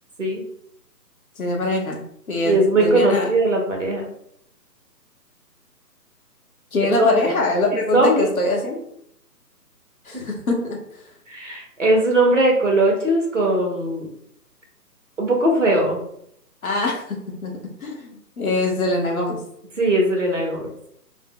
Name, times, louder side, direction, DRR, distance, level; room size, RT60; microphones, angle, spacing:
voice 1, 1.4-3.3 6.7-8.8 10.1-10.8 16.6-19.4, left 2 dB, 60° left, 1 dB, 0.7 m, -24 dB
voice 2, 2.5-4.1 7.0-7.4 7.7-8.3 10.1-10.2 11.3-14.1 15.2-16.0 19.8-20.7, right 1 dB, 50° right, 0 dB, 0.6 m, -19 dB
2.1 x 2.0 x 3.5 m, 0.71 s
hypercardioid pair, 175°, 50 cm